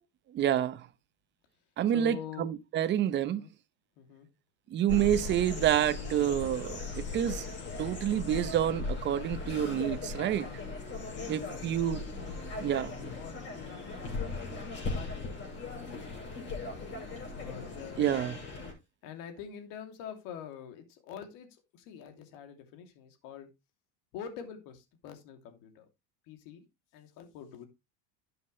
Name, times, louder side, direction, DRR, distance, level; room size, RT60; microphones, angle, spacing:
voice 1, 0.3-0.9 1.8-3.5 4.7-7.5 7.8-10.5 11.3-12.0 12.6-13.0 18.0-18.4, right 11 dB, 30° right, 0.8 m, -28 dB
voice 2, 1.9-2.5 2.8-2.9 3.3-3.5 4.0-4.3 10.9-11.2 11.6-12.2 13.1-14.0 14.9-15.8 17.3-18.3 19.0-23.5 24.1-25.9 26.3-26.6 26.9-27.7, left 8 dB, 60° left, 2.8 m, -46 dB
sound 1, 4.9-18.7, left 3 dB, 30° left, 6.1 m, -38 dB
12.0 x 7.9 x 3.2 m
cardioid pair, 150°, 37 cm